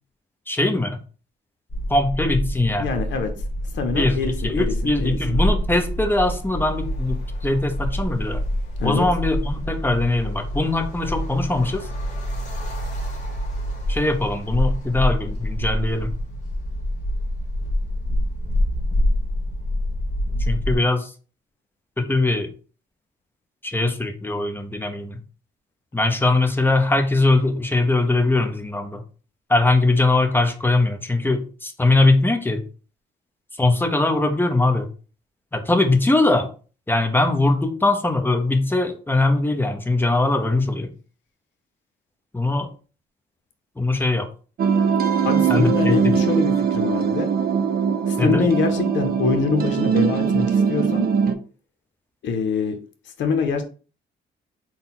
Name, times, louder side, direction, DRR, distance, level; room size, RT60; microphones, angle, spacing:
voice 1, 0.5-1.0 1.9-2.9 3.9-7.2 7.4-8.4 8.8-11.9 13.9-16.1 20.5-21.1 22.0-22.5 23.6-25.2 25.9-29.0 29.5-32.6 33.6-34.9 35.5-36.5 36.9-40.9 42.3-42.7 43.8-44.3 45.5-46.1 48.2-48.5, left 2 dB, 10° left, 0.8 m, -21 dB
sound 1, 1.7-20.8, equal, 40° left, 1.4 m, -26 dB
voice 2, 2.8-3.3 3.7-4.7 5.0-5.4 8.8-9.0 45.2-47.3 48.1-51.1 52.2-52.8 53.2-53.6, left 5 dB, 70° left, 0.8 m, -24 dB
sound 2, 44.6-51.4, right 6 dB, 50° right, 0.5 m, -21 dB
3.9 x 2.2 x 4.0 m
cardioid pair, 90°, 20 cm